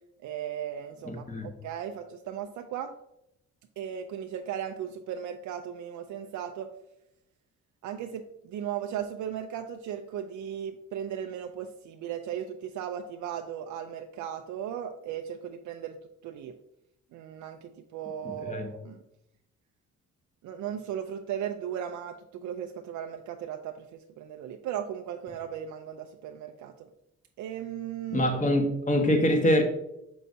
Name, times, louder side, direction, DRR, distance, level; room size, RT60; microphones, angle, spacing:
voice 1, 0.2-2.9 3.8-6.7 7.8-16.0 16.2-16.5 17.1-19.0 20.4-26.9 27.4-28.3, right 9 dB, 75° right, 0.5 m, -36 dB
voice 2, 1.0-1.5 18.4-18.7 28.1-29.6, left 1 dB, 25° left, 1.3 m, -24 dB
6.2 x 5.6 x 2.7 m
cardioid pair, 90°, 30 cm